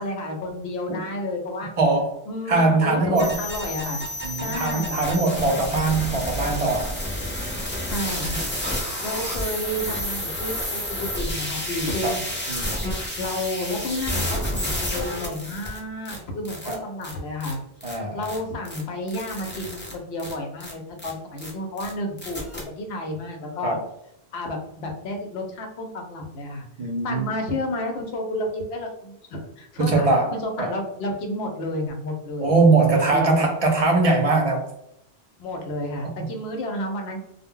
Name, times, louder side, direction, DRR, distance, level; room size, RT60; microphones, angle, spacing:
voice 1, 0.0-1.7 2.3-4.0 4.4-5.0 7.9-8.4 9.0-12.2 13.2-17.6 18.1-22.4 22.8-23.8 24.3-26.6 27.0-32.5 32.9-33.5 35.4-37.2, left 1 dB, 80° left, 2 dB, 0.9 m, -31 dB
voice 2, 1.8-2.1 2.5-3.4 4.2-7.0 12.0-12.2 12.5-12.9 16.7-16.8 17.8-18.2 23.6-23.8 26.8-27.3 29.8-30.3 30.6-30.7 32.4-34.6, right 3 dB, 45° right, 2 dB, 0.5 m, -21 dB
sound 1, 3.2-15.8 16.0-16.2 16.4-16.7 17.0-17.1 17.4-17.5 17.8-18.0 18.2-18.4 18.6-18.8 19.1-19.9 20.2-20.3 20.6-20.7 21.0-21.1 21.4-21.5 21.8-21.9 22.2-22.6, left 1 dB, 15° left, 0.4 m, -30 dB
2.1 x 2.0 x 3.5 m, 0.78 s
omnidirectional pair, 1.0 m